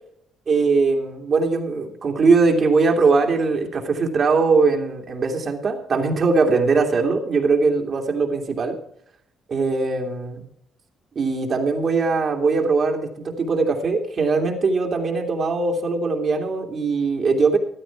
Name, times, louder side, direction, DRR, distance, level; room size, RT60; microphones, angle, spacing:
voice 1, 0.5-8.8 9.5-10.4 11.2-17.6, right 4 dB, 50° right, 3 dB, 2.7 m, -20 dB
14.5 x 12.5 x 4.6 m, 0.68 s
cardioid pair, 90°, 0 cm